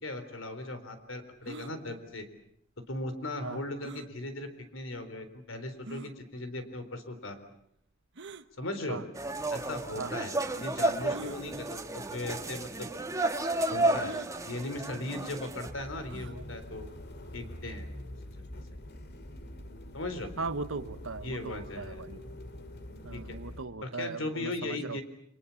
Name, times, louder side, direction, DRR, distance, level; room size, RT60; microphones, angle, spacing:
voice 1, 0.0-2.3 2.9-7.4 8.6-9.0 9.5-12.9 13.7-16.9 17.3-18.1 18.3-18.6 19.9-20.3 21.2-22.0 23.1-23.4 23.8-25.0, left 2 dB, 70° left, 9 dB, 4.0 m, -38 dB
sound 1, 1.4-1.7 3.8-4.1 4.9-5.0 5.9-6.1 8.1-8.5 9.5-9.6 11.1-11.4 12.3-12.5 12.7-12.8 14.0-14.3 16.0-16.4, right 2 dB, 60° right, 1.1 m, -44 dB
sound 2, 9.2-15.7, right 2 dB, 15° right, 1.7 m, -32 dB
voice 2, 10.0-10.3 16.3-16.4 20.4-22.2 23.0-25.0, right 3 dB, 85° right, 13 dB, 1.2 m, -38 dB
sound 3, 15.6-23.6, left 1 dB, 55° left, 2.7 m, -45 dB
29.5 x 24.5 x 7.2 m, 0.73 s
head